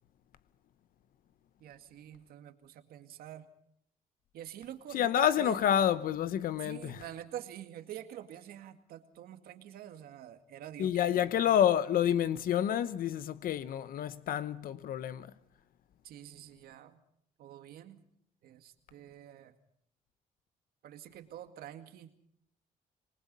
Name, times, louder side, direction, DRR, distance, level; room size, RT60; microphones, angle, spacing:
voice 1, 1.6-3.5 4.3-5.6 6.6-11.5 16.0-17.0 17.4-18.0 18.4-19.5 20.8-22.1, right 11 dB, 80° right, 2.1 m, -46 dB
voice 2, 4.9-7.0 10.8-15.3, left 10 dB, 70° left, 0.9 m, -28 dB
26.5 x 20.5 x 5.5 m
cardioid pair, 105°, 15 cm